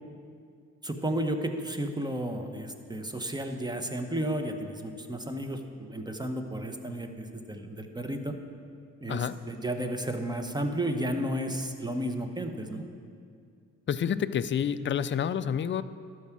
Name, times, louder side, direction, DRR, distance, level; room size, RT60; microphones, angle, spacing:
voice 1, 0.8-8.4 9.0-12.9, right 1 dB, 10° right, 5 dB, 1.0 m, -33 dB
voice 2, 13.9-15.8, left 8 dB, 35° left, 13 dB, 0.4 m, -28 dB
11.5 x 4.6 x 6.1 m, 2.3 s
supercardioid pair, 55°, 33 cm